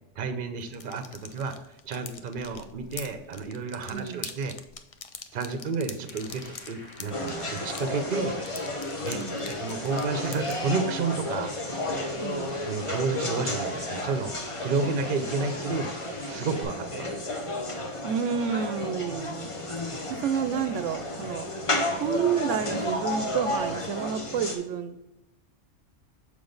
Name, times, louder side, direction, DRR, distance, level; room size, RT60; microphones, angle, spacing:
voice 1, 0.2-1.5 1.8-4.6 5.3-8.4 9.0-11.6 12.6-14.3 14.6-17.1, right 4 dB, 50° right, 8 dB, 0.8 m, -31 dB
sound 1, 0.6-10.7, left 6 dB, 65° left, 0.3 m, -44 dB
voice 2, 3.9-4.3 9.1-9.5 12.2-12.6 18.0-19.5 19.8-21.5 22.0-25.0, right 7 dB, 80° right, 10 dB, 0.9 m, -30 dB
sound 2, 5.7-16.6, equal, 85° left, 2.2 m, -48 dB
sound 3, 7.1-24.6, left 1 dB, 30° left, 0.8 m, -32 dB
6.9 x 4.9 x 3.9 m, 0.92 s
omnidirectional pair, 1.3 m